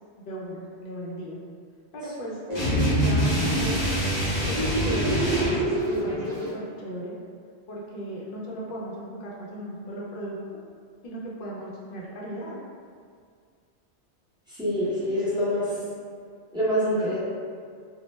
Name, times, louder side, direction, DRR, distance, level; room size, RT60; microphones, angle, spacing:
voice 1, 0.2-1.4 1.9-3.8 4.4-7.1 7.7-10.4 11.0-12.5, right 1 dB, 60° left, -5 dB, 0.6 m, -36 dB
sound 1, 2.5-6.5, right 1 dB, 45° right, 0.6 m, -29 dB
sound 2, 2.6-5.6, equal, 35° left, 1.0 m, -25 dB
voice 2, 14.5-15.7 16.5-17.2, equal, 5° right, -12 dB, 0.5 m, -25 dB
2.2 x 2.1 x 3.0 m, 2.1 s
omnidirectional pair, 1.1 m